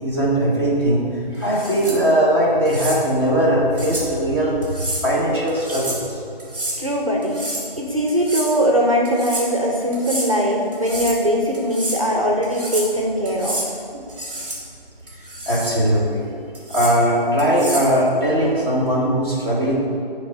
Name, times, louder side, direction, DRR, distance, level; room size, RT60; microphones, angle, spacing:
voice 1, 0.0-4.6 5.0-6.2 15.1-16.2 16.7-19.7, equal, 25° left, -8 dB, 1.1 m, -19 dB
sound 1, 1.5-2.0 2.6-3.0 3.8-4.1 4.6-5.0 5.5-6.0 6.4-6.8 7.2-7.7 8.1-8.6 9.0-9.5 9.9-10.3 10.7-11.2 11.5-12.0 12.4-12.9 13.2-13.7 14.1-14.6 15.1-15.8 16.5-16.9 17.4-17.9, right 1 dB, 10° right, 0.8 m, -29 dB
voice 2, 6.8-7.4 7.8-13.6 13.9-14.0, equal, 35° right, -1 dB, 0.5 m, -21 dB
7.8 x 3.3 x 4.0 m, 2.6 s
hypercardioid pair, 180°, 29 cm